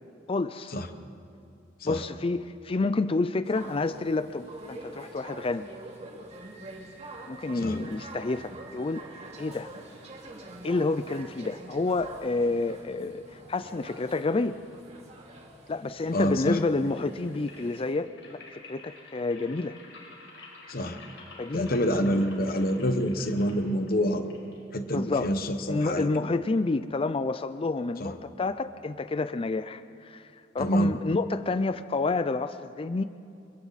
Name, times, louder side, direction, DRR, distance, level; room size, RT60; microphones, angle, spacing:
voice 1, 0.3-0.7 1.8-5.7 7.3-9.0 9.4-9.7 10.6-14.6 15.7-19.8 21.4-21.7 24.9-25.4 25.7-30.3 30.5-33.0, left 3 dB, 30° left, 12 dB, 0.4 m, -29 dB
sound 1, 3.4-17.9, right 2 dB, 40° right, 2.5 m, -46 dB
voice 2, 16.1-16.6 20.7-21.0 21.5-24.3 24.7-26.1 28.0-28.1 30.6-30.9, equal, 55° left, 7 dB, 1.2 m, -27 dB
sound 2, 16.4-25.3, left 3 dB, 75° left, 4.9 m, -50 dB
28.5 x 23.0 x 4.2 m, 2.6 s
head